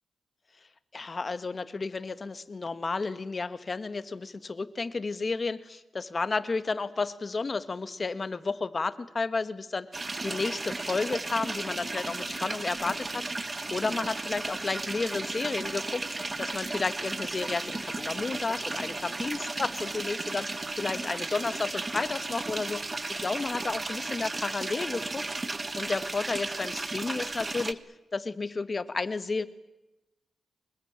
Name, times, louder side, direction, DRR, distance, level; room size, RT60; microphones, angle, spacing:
voice 1, 0.9-25.2 25.7-27.8 28.1-29.5, left 4 dB, 35° left, 12 dB, 1.7 m, -32 dB
sound 1, 9.9-27.7, right 3 dB, 25° right, 1.4 m, -34 dB
24.5 x 21.0 x 8.9 m, 0.96 s
cardioid pair, 90°, 0 cm